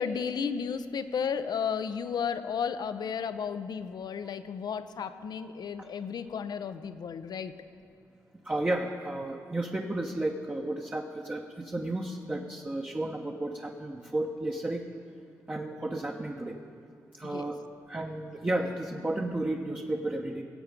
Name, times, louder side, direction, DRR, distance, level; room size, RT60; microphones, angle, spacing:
voice 1, 0.0-7.5 17.3-17.4, left 6 dB, 65° left, 11 dB, 0.7 m, -33 dB
voice 2, 8.4-14.8 15.5-16.6 17.1-17.6 17.9-20.4, right 1 dB, 20° right, 1 dB, 1.0 m, -33 dB
17.0 x 8.0 x 5.2 m, 2.5 s
supercardioid pair, 45°, 8 cm